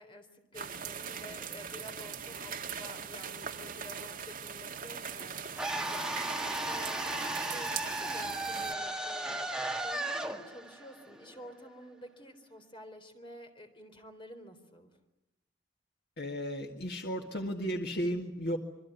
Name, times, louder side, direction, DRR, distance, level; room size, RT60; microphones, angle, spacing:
voice 1, 0.0-15.0, equal, 25° left, 5 dB, 3.8 m, -50 dB
sound 1, 0.5-8.7, right 7 dB, 45° right, 1.8 m, -41 dB
sound 2, 5.6-11.7, right 1 dB, 5° right, 1.8 m, -35 dB
voice 2, 16.2-18.6, equal, 55° left, 3 dB, 1.9 m, -34 dB
27.0 x 23.5 x 9.4 m, 0.88 s
head